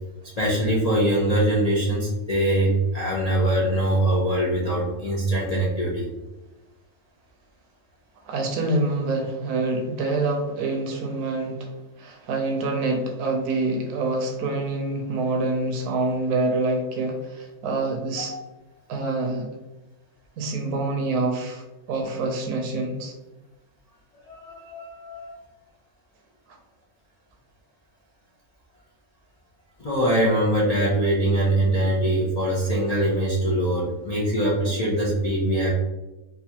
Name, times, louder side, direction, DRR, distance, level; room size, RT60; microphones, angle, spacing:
voice 1, 0.4-6.1 18.3-18.5 24.3-25.4 29.8-35.7, right 1 dB, 65° left, -5 dB, 0.3 m, -23 dB
voice 2, 8.3-11.7 12.0-18.3 18.9-19.5 20.4-23.1, right 2 dB, 75° right, 3 dB, 1.2 m, -26 dB
4.0 x 2.5 x 2.8 m, 1.0 s
omnidirectional pair, 1.6 m